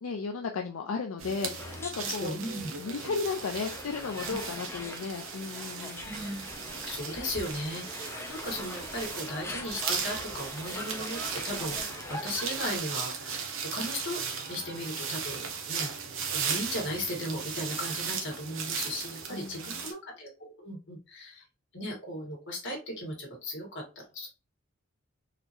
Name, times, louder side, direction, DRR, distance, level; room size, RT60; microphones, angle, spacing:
voice 1, 0.0-2.4 2.8-6.1 19.3-19.8, left 5 dB, 85° left, 3 dB, 0.5 m, -34 dB
sound 1, 1.2-19.9, right 6 dB, 70° right, 0.9 m, -37 dB
sound 2, 1.6-12.8, left 2 dB, 10° left, 0.5 m, -43 dB
voice 2, 2.0-2.7 6.0-6.4 6.9-13.4 13.7-14.2 14.5-15.9 16.3-21.4 21.7-24.3, left 1 dB, 60° left, -1 dB, 1.7 m, -37 dB
4.1 x 2.9 x 2.6 m, 0.31 s
head